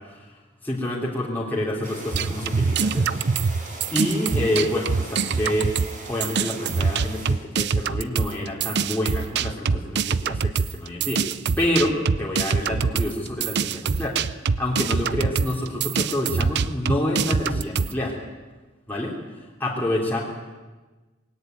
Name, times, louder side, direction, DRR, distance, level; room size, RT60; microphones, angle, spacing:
voice 1, 0.6-3.1 3.9-5.7 6.1-11.2 11.6-18.2 18.9-19.1 19.6-20.2, left 1 dB, 10° left, -4 dB, 3.5 m, -27 dB
sound 1, 1.8-7.3, right 2 dB, 40° right, 6.8 m, -40 dB
sound 2, 2.1-5.9 6.2-17.9, right 5 dB, 60° right, 0.6 m, -24 dB
21.5 x 17.5 x 9.4 m, 1.2 s
head